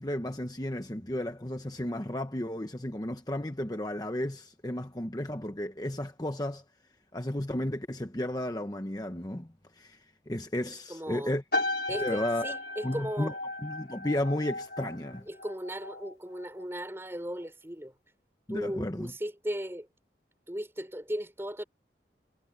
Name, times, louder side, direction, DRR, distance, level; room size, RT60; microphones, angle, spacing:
voice 1, 0.0-6.6 7.1-9.5 9.7-10.0 10.3-11.4 12.0-12.5 12.8-13.3 13.6-15.2 18.5-19.1, left 1 dB, 20° left, 1.1 m, -33 dB
voice 2, 10.7-11.3 11.9-13.4 15.3-17.9 18.5-19.9 20.5-21.6, equal, 15° right, 3.9 m, -37 dB
sound 1, 11.5-16.1 16.4-16.8, left 2 dB, 60° left, 5.5 m, -35 dB
head